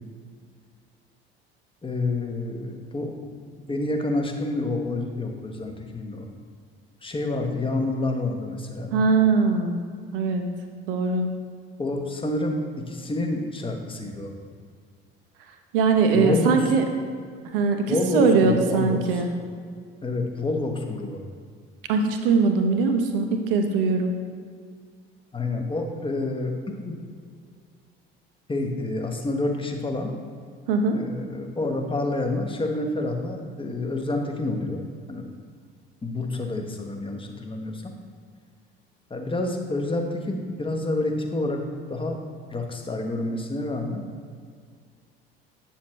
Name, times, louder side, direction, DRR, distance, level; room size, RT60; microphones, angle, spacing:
voice 1, 1.8-3.4 3.7-6.3 7.0-8.9 11.8-14.3 16.1-16.7 17.9-19.2 20.0-21.2 25.3-26.9 28.5-30.1 30.9-34.8 35.1-35.3 36.0-37.9 39.1-41.6 41.9-42.2 42.5-44.1, left 2 dB, 15° left, 3 dB, 1.2 m, -28 dB
voice 2, 8.9-9.8 10.1-10.5 10.9-11.3 15.7-16.8 17.5-19.3 21.9-24.1 30.7-31.0, right 4 dB, 70° right, 5 dB, 0.9 m, -21 dB
8.3 x 7.2 x 3.2 m, 2.1 s
figure-of-eight pair, 55°, 29 cm